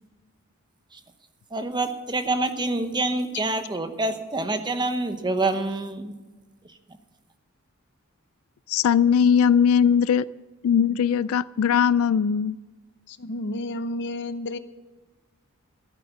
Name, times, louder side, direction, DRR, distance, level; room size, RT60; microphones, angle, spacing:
voice 1, 1.5-6.1, right 2 dB, 20° right, 8 dB, 1.0 m, -26 dB
voice 2, 8.7-10.3 10.6-12.6, left 7 dB, 70° left, 19 dB, 0.3 m, -20 dB
voice 3, 13.1-14.6, left 1 dB, 55° left, 12 dB, 0.8 m, -31 dB
14.0 x 8.7 x 7.2 m, 1.2 s
head